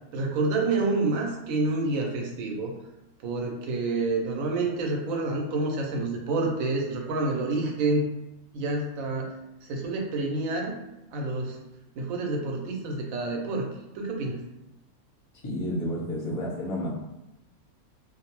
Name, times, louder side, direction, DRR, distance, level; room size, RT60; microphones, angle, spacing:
voice 1, 0.1-2.7 3.2-8.1 8.5-10.7 11.1-11.6 12.0-14.4, right 3 dB, 75° right, 1 dB, 1.0 m, -28 dB
voice 2, 15.4-16.9, equal, 35° left, -4 dB, 0.5 m, -30 dB
2.4 x 2.0 x 2.9 m, 0.91 s
omnidirectional pair, 1.5 m